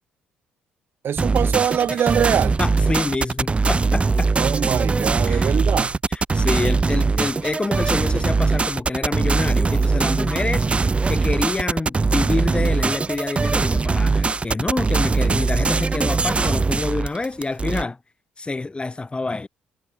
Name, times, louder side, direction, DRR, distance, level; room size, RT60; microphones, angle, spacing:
voice 1, 1.0-2.6 4.3-6.0, right 9 dB, 50° right, 4.2 m, -23 dB
sound 1, 1.2-17.8, right 4 dB, 25° right, 0.6 m, -21 dB
voice 2, 2.6-4.3 5.3-5.5 6.1-10.7 11.1-18.0 18.4-19.5, left 3 dB, 20° left, 3.0 m, -27 dB
figure-of-eight pair, 45°, 5 cm